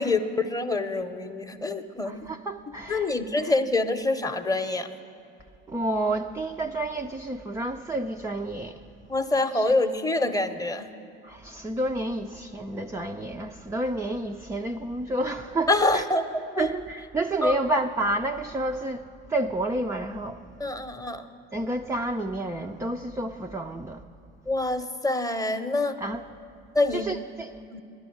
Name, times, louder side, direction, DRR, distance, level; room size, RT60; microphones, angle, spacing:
voice 1, 0.0-2.2 2.9-4.9 9.1-10.9 15.7-16.3 16.6-16.7 17.4-17.5 20.6-21.3 24.5-26.0 26.7-27.1 27.7-27.8, left 2 dB, 10° left, 8 dB, 0.8 m, -26 dB
voice 2, 2.0-3.1 3.4-3.5 5.7-8.8 9.5-9.7 11.2-16.1 16.6-19.0 19.3-20.4 21.5-24.0 26.0-26.2 26.9-27.5, right 1 dB, 10° right, 3 dB, 0.4 m, -30 dB
10.5 x 10.5 x 7.8 m, 2.5 s
hypercardioid pair, 70°, 33 cm